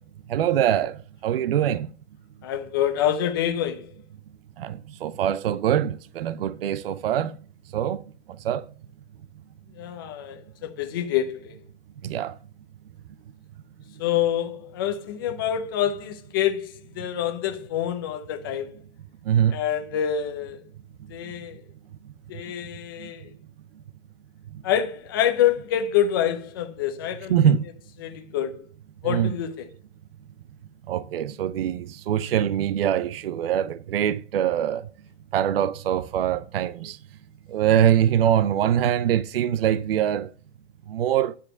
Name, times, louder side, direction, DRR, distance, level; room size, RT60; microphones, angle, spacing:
voice 1, 0.3-1.9 4.6-7.3 7.7-8.0 8.4-8.6 12.0-12.3 19.3-19.5 27.3-27.6 29.0-29.3 30.9-34.8 35.3-37.0 37.5-40.3 40.9-41.3, right 10 dB, 55° right, 0.5 m, -23 dB
voice 2, 2.4-3.9 9.7-11.6 14.0-18.7 19.5-20.6 21.1-21.6 22.3-23.3 24.6-27.5 28.0-28.6 29.0-29.7, left 10 dB, 20° left, 0.6 m, -26 dB
9.9 x 4.8 x 6.4 m
hypercardioid pair, 170°, 34 cm